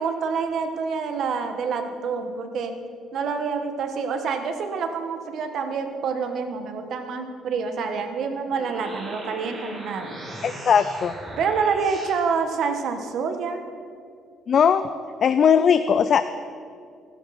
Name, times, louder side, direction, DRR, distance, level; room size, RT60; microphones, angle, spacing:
voice 1, 0.0-2.7 3.1-10.2 11.4-13.6, right 5 dB, 60° right, 6 dB, 1.6 m, -27 dB
sound 1, 8.3-12.2, right 1 dB, 30° right, 5.5 m, -38 dB
voice 2, 10.4-11.1 14.5-14.9 15.2-16.2, left 7 dB, 45° left, 11 dB, 0.5 m, -18 dB
25.5 x 12.5 x 4.4 m, 2.3 s
cardioid pair, 130°, 0 cm